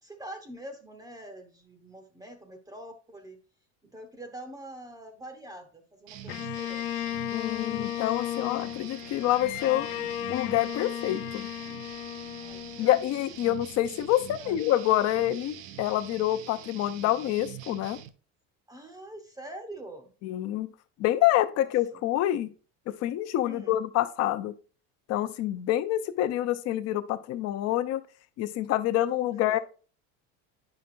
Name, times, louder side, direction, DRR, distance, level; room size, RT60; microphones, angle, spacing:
voice 1, 0.0-3.4 3.8-7.1 12.4-12.9 13.4-13.6 14.4-14.6 18.7-20.1 21.6-22.0 23.4-23.8 29.3-29.6, right 1 dB, 10° right, 6 dB, 0.8 m, -45 dB
sound 1, 6.1-18.1, right 11 dB, 70° right, 0.7 m, -45 dB
Bowed string instrument, 6.3-13.5, left 12 dB, 85° left, 0.6 m, -35 dB
voice 2, 7.3-9.9 10.3-11.5 12.8-18.0 20.2-20.7 21.0-22.5 22.9-24.5 25.1-28.0 28.4-29.6, left 13 dB, 45° left, 11 dB, 0.7 m, -27 dB
9.3 x 5.9 x 2.5 m, 0.37 s
cardioid pair, 155°, 35 cm